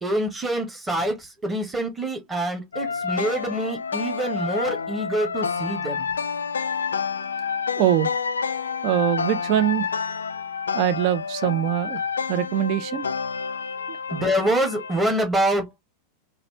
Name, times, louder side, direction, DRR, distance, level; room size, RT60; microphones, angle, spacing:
voice 1, 0.0-6.1 14.1-15.8, right 1 dB, 10° right, 1.5 m, -26 dB
sound 1, 2.7-15.1, left 6 dB, 70° left, 0.3 m, -29 dB
voice 2, 7.8-8.1 8.8-9.9 10.7-12.0 12.3-13.1 13.9-14.0, right 11 dB, 45° right, 0.5 m, -23 dB
4.0 x 2.7 x 3.2 m
figure-of-eight pair, 90°, 0 cm